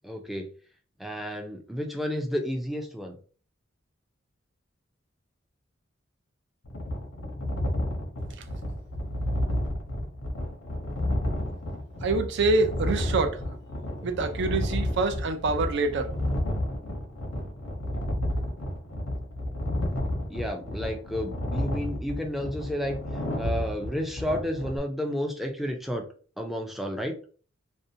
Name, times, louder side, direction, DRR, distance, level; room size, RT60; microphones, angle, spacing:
voice 1, 0.0-0.5 1.0-3.2 14.0-14.1 20.3-23.0 23.4-26.0 26.4-27.2, equal, ahead, 0.4 m, -31 dB
sound 1, 6.6-24.8, left 1 dB, 90° left, 0.7 m, -31 dB
voice 2, 12.0-13.4 14.0-16.1, right 3 dB, 60° right, 0.4 m, -26 dB
2.6 x 2.1 x 2.6 m
head